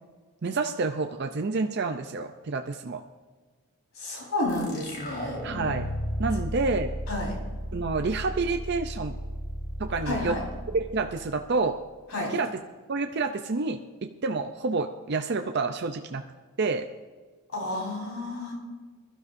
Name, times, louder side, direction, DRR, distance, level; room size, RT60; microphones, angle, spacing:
voice 1, 0.4-3.0 5.4-5.9 6.2-6.9 7.7-9.1 9.8-10.4 10.7-11.8 12.3-12.5 12.9-16.2 16.6-16.9, right 3 dB, 50° right, 5 dB, 0.5 m, -28 dB
voice 2, 3.9-5.4 7.1-7.3 10.1-10.4 12.1-12.3 17.5-18.5, left 2 dB, 75° left, -2 dB, 4.5 m, -30 dB
sound 1, 4.5-11.8, equal, 45° left, 3.8 m, -35 dB
21.0 x 12.5 x 2.6 m, 1.4 s
head